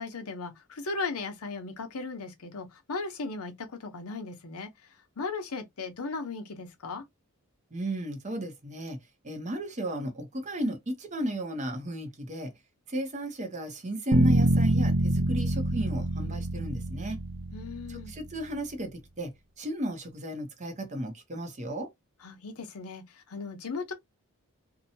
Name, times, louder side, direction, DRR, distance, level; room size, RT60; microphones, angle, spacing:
voice 1, 0.0-4.7 5.2-7.0 17.5-18.1 22.2-23.9, left 4 dB, 80° left, 0.7 m, -37 dB
voice 2, 7.7-9.0 9.2-12.5 12.9-17.2 17.9-21.9, right 1 dB, 30° right, 0.7 m, -34 dB
sound 1, 14.1-18.2, right 2 dB, 70° right, 0.5 m, -26 dB
2.7 x 2.2 x 2.6 m
head